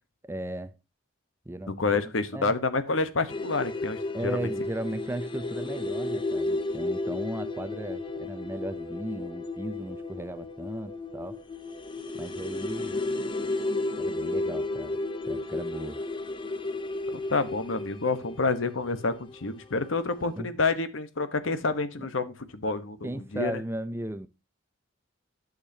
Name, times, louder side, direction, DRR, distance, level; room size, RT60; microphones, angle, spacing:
voice 1, 0.2-0.7 1.5-1.9 2.3-2.6 4.1-11.4 12.1-13.0 14.0-15.0 15.3-16.0 20.4-20.5 22.0-22.1 23.0-24.3, right 1 dB, 10° right, 0.5 m, -36 dB
voice 2, 1.8-4.5 17.1-23.5, left 3 dB, 90° left, 1.1 m, -28 dB
sound 1, 3.3-20.0 20.3-20.4, left 2 dB, 25° left, 0.7 m, -33 dB
11.5 x 6.4 x 2.8 m
head